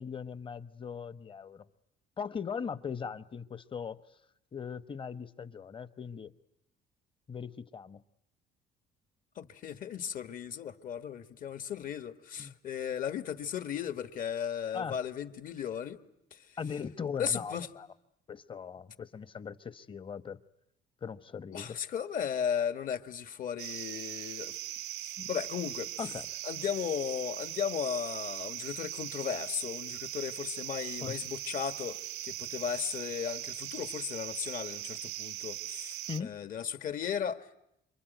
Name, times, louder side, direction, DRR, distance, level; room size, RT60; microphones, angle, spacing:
voice 1, 0.0-1.6 2.2-4.0 4.5-6.3 7.3-8.0 12.4-12.5 14.7-15.0 16.6-17.9 18.3-20.4 21.0-21.8 25.2-25.3 26.0-26.3 31.0-31.1 36.1-36.4, left 6 dB, 30° left, 13 dB, 1.0 m, -39 dB
voice 2, 9.4-16.0 16.3-16.4 17.2-17.7 21.5-24.5 25.3-25.9 26.4-32.0 32.2-37.6, left 8 dB, 55° left, 10 dB, 1.5 m, -36 dB
sound 1, 23.6-36.2, right 14 dB, 90° right, 1.0 m, -40 dB
27.0 x 23.5 x 9.2 m, 0.82 s
cardioid pair, 110°, 17 cm